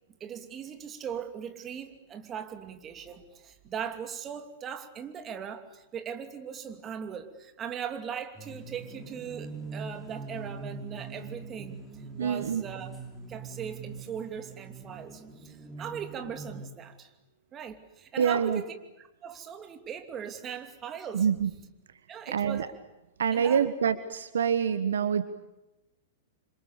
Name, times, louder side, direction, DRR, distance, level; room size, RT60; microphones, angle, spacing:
voice 1, 0.2-12.9 13.3-17.1 17.5-18.7 19.2-21.3 22.1-22.7 23.3-23.6, right 8 dB, 25° right, 6 dB, 2.7 m, -39 dB
sound 1, 8.3-16.7, right 4 dB, 10° right, 5.3 m, -42 dB
voice 2, 12.2-12.6 18.2-18.6 21.1-21.5 22.3-22.7 23.2-25.2, right 7 dB, 70° right, 12 dB, 1.3 m, -26 dB
28.5 x 26.0 x 7.1 m, 0.97 s
figure-of-eight pair, 105°, 0 cm